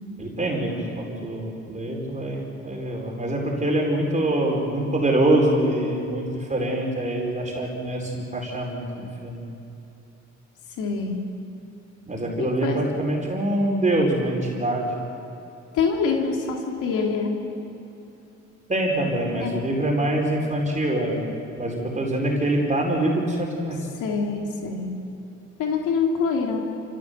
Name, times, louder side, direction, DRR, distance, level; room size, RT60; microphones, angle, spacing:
voice 1, 0.2-6.2 6.5-9.4 12.1-14.9 18.7-21.2 21.6-23.8, right 1 dB, 25° right, -1 dB, 4.8 m, -24 dB
voice 2, 10.8-11.2 12.4-12.8 15.7-17.3 19.4-19.6 24.0-24.9 25.6-26.6, left 5 dB, 85° left, 0 dB, 2.9 m, -25 dB
28.5 x 15.5 x 8.3 m, 2.9 s
cardioid pair, 90°, 30 cm